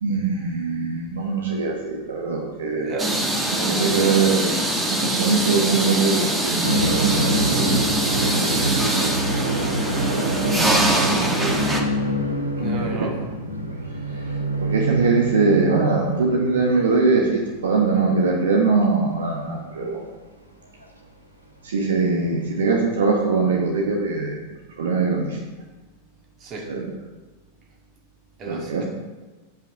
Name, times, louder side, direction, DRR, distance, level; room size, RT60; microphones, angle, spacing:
voice 1, 0.0-3.1 3.5-7.7 8.3-8.6 10.4-10.9 11.2-11.8 12.7-13.1 14.1-14.2 14.6-20.0 21.6-25.4 26.6-27.0 28.5-28.8, right 4 dB, 65° right, 0 dB, 1.3 m, -22 dB
voice 2, 2.6-3.3 8.4-8.8 10.5-11.4 12.6-13.4 26.4-26.7 28.4-28.8, right 2 dB, 30° right, 0 dB, 2.2 m, -35 dB
sound 1, 3.0-11.8, right 1 dB, 15° right, 1.4 m, -23 dB
sound 2, 6.6-17.6 17.9-18.0 19.3-19.4 20.8-20.9 22.4-22.5, right 2 dB, 90° right, 1.2 m, -26 dB
7.8 x 5.7 x 7.3 m, 1.2 s
figure-of-eight pair, 90°, 0 cm